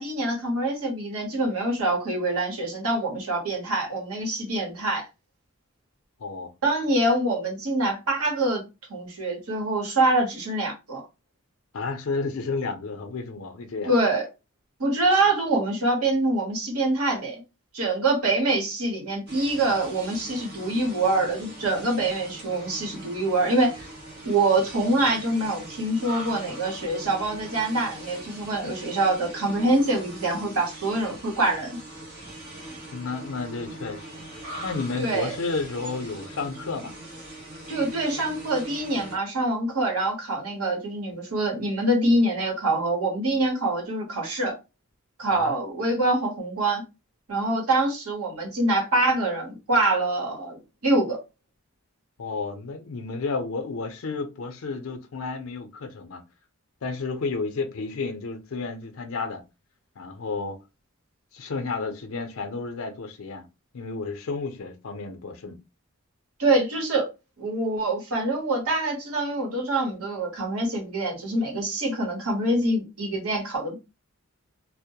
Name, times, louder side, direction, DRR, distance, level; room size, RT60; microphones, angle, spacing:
voice 1, 0.0-5.1 6.6-8.6 8.9-11.0 13.9-14.3 14.8-17.4 17.7-23.9 24.2-31.8 35.0-35.3 37.7-44.6 45.2-46.8 47.3-51.2 66.4-67.1 67.4-73.8, right 2 dB, 85° right, 1.0 m, -25 dB
voice 2, 6.2-6.5 11.7-13.9 32.9-34.0 34.6-36.9 45.3-45.5 52.2-56.2 56.8-59.4 60.0-60.6 61.3-63.4 63.7-65.6, left 4 dB, 70° left, 0.5 m, -31 dB
sound 1, 19.3-39.2, right 1 dB, 45° right, 0.8 m, -41 dB
2.1 x 2.0 x 2.8 m
head